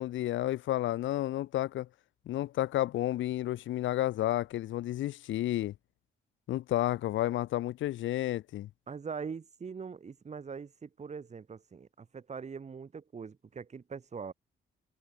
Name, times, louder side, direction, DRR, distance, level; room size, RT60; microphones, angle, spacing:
voice 1, 0.0-1.9 2.3-5.7 6.5-8.7, left 14 dB, 75° left, 0.6 m, -31 dB
voice 2, 8.9-14.3, right 5 dB, 35° right, 5.8 m, -42 dB
cardioid pair, 130°, 20 cm